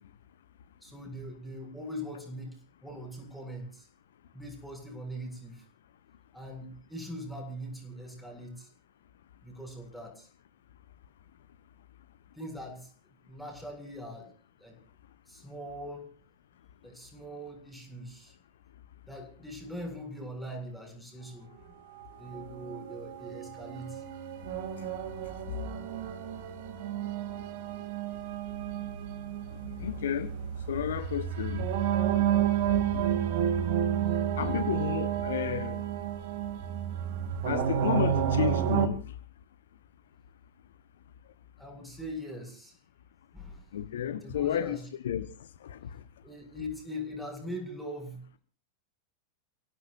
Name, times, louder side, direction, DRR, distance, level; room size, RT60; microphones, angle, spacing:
voice 1, 0.8-3.9 4.3-5.7 6.3-8.7 9.4-10.3 12.3-12.9 13.3-14.3 14.6-14.8 15.3-16.1 16.8-18.4 19.0-21.7 22.2-24.0 28.7-28.9 41.6-42.8 43.3-43.7 44.2-44.8 46.2-48.4, equal, ahead, 7.5 m, -41 dB
sound 1, 22.3-38.9, right 10 dB, 50° right, 3.1 m, -31 dB
voice 2, 29.8-30.3 30.7-31.7 32.1-32.3 32.9-33.0 34.4-35.8 37.4-39.1 43.7-44.8 45.0-45.3 45.6-46.0, left 9 dB, 60° left, 1.2 m, -32 dB
30.0 x 17.0 x 2.7 m
figure-of-eight pair, 90°, 0 cm